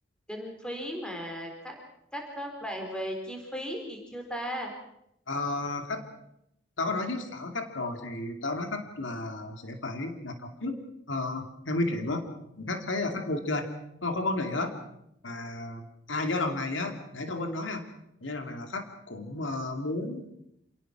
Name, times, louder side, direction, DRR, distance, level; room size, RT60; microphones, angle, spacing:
voice 1, 0.3-1.7 2.1-4.7, equal, 5° left, 2 dB, 4.2 m, -36 dB
voice 2, 5.3-6.1 6.8-10.8 11.1-12.3 12.6-13.7 14.0-14.8 15.2-17.9 18.2-20.3, left 2 dB, 75° left, 6 dB, 2.6 m, -32 dB
27.5 x 18.0 x 6.1 m, 0.77 s
head